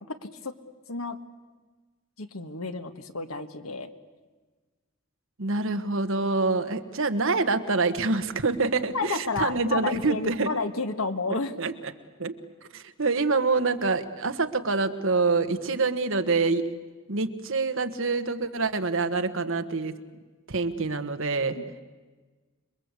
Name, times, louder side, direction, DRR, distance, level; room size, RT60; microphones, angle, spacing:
voice 1, 0.1-0.5 0.9-1.2 2.2-3.9 8.9-11.6 21.6-21.7, left 3 dB, 85° left, 9 dB, 1.6 m, -31 dB
voice 2, 5.4-10.5 11.3-11.7 12.2-12.3 12.7-16.6 17.1-19.9 20.5-21.6, right 3 dB, 65° right, 8 dB, 1.4 m, -26 dB
27.5 x 22.5 x 8.3 m, 1.3 s
head